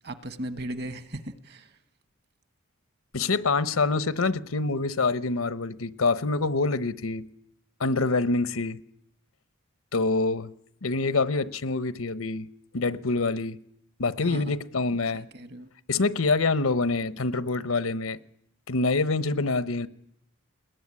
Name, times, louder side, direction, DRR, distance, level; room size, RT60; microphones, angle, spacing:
voice 1, 0.0-1.7 14.2-14.6 15.3-15.7, right 1 dB, 50° right, 1.3 m, -37 dB
voice 2, 3.1-7.3 7.8-8.8 9.9-10.5 10.8-12.5 12.7-13.6 14.0-15.3 15.9-18.2 18.7-19.9, left 3 dB, 90° left, 1.0 m, -26 dB
20.5 x 20.5 x 9.7 m
head